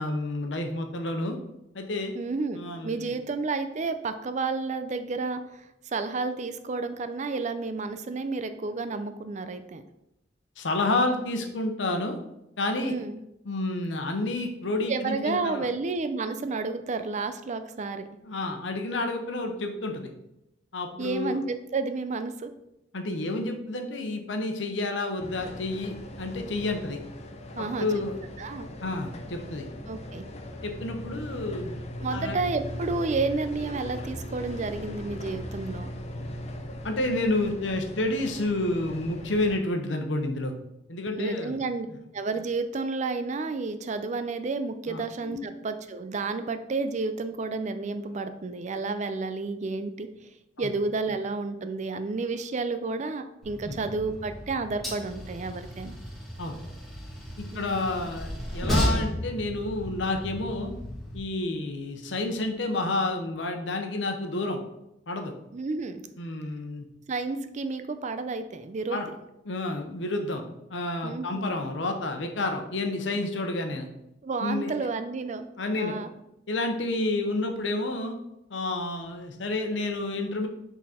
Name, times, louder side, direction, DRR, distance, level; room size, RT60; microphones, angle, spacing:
voice 1, 0.0-1.4 1.7-2.1 2.6-3.1 10.6-12.2 12.6-12.9 13.4-15.7 18.2-20.1 20.7-21.4 22.9-27.0 27.6-28.2 28.8-29.6 30.6-31.8 32.1-32.4 36.8-40.5 40.9-41.6 44.9-45.4 50.6-50.7 53.7-53.8 56.4-56.6 57.4-60.7 61.1-64.6 65.1-65.3 66.2-66.8 68.9-69.1 69.4-70.4 70.7-73.9 74.4-74.7 75.6-76.0 76.5-78.2 78.5-80.5, left 2 dB, 80° left, 5 dB, 0.9 m, -30 dB
voice 2, 2.1-9.8 12.8-13.2 14.9-18.1 21.0-22.5 27.6-27.9 28.4-28.7 29.9-30.3 32.0-35.9 41.2-41.9 42.1-50.1 50.6-56.0 57.5-57.9 65.5-66.0 67.1-69.0 71.0-71.5 74.2-75.5 75.7-76.1, right 3 dB, 40° right, 9 dB, 0.4 m, -31 dB
sound 1, 25.2-39.6, left 1 dB, 35° left, 0.6 m, -39 dB
Train, 53.4-61.2, equal, ahead, 1.6 m, -33 dB
6.2 x 4.0 x 4.2 m, 0.85 s
head